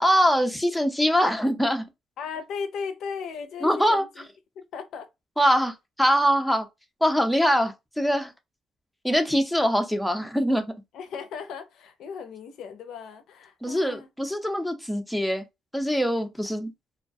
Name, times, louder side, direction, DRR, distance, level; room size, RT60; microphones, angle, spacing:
voice 1, 0.0-1.8 3.6-4.0 5.4-6.7 7.0-8.3 9.0-10.6 13.6-15.4 15.7-16.7, equal, ahead, 0.5 m, -23 dB
voice 2, 2.2-4.3 4.6-5.1 10.9-14.1, left 6 dB, 75° left, 0.4 m, -36 dB
2.3 x 2.2 x 2.5 m
cardioid pair, 100°, 0 cm